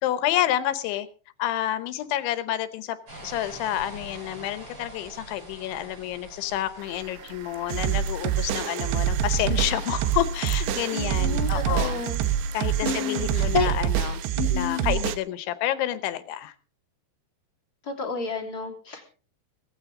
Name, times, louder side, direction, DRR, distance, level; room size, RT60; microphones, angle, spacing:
voice 1, 0.0-1.1 1.4-3.0 3.2-12.0 12.5-14.2 14.5-16.5, left 13 dB, 80° left, 13 dB, 3.2 m, -29 dB
sound 1, 3.1-8.2, right 1 dB, 35° right, 8.3 m, -44 dB
sound 2, 6.8-15.0, right 9 dB, 90° right, 4.3 m, -46 dB
sound 3, 7.7-15.2, right 10 dB, 75° right, 3.0 m, -26 dB
voice 2, 10.9-12.2 12.8-13.7 14.4-15.0 17.8-19.1, left 5 dB, 25° left, 0 dB, 2.9 m, -30 dB
18.5 x 15.0 x 3.7 m, 0.38 s
omnidirectional pair, 5.5 m